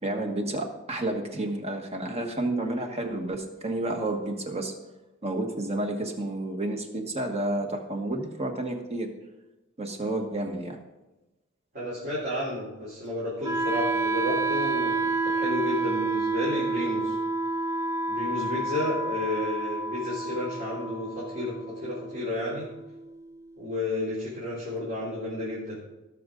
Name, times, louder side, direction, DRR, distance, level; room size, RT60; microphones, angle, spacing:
voice 1, 0.0-4.7 5.2-9.1 9.8-10.8, right 1 dB, 30° right, 4 dB, 1.3 m, -30 dB
voice 2, 11.7-17.1 18.1-22.7 23.6-25.8, left 1 dB, 45° right, -8 dB, 3.6 m, -32 dB
Wind instrument woodwind instrument, 13.4-23.4, right 3 dB, 15° right, 0.5 m, -29 dB
18.0 x 6.6 x 3.8 m, 1.1 s
head